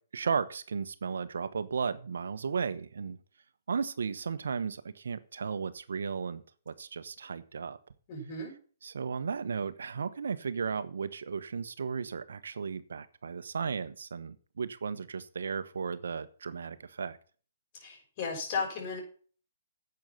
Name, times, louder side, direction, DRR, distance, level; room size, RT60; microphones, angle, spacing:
voice 1, 0.1-3.2 3.7-7.8 8.8-17.2, right 6 dB, 75° right, 12 dB, 1.1 m, -35 dB
voice 2, 8.1-8.5 17.7-19.0, left 4 dB, 40° left, 0 dB, 6.3 m, -35 dB
10.5 x 8.1 x 5.8 m, 0.40 s
hypercardioid pair, 140°, 0 cm